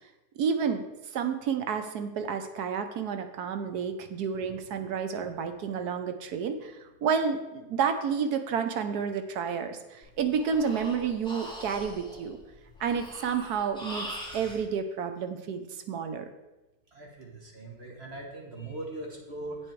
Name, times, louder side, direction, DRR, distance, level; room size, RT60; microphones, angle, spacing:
voice 1, 0.4-0.8 1.1-6.7 7.0-12.4 12.8-14.1 14.3-16.3, right 6 dB, 75° right, 8 dB, 1.3 m, -30 dB
Breathing, 10.0-14.6, equal, 5° left, 1.8 m, -42 dB
voice 2, 16.9-19.6, right 2 dB, 45° right, 0 dB, 1.5 m, -40 dB
8.3 x 7.7 x 4.6 m, 1.0 s
omnidirectional pair, 1.7 m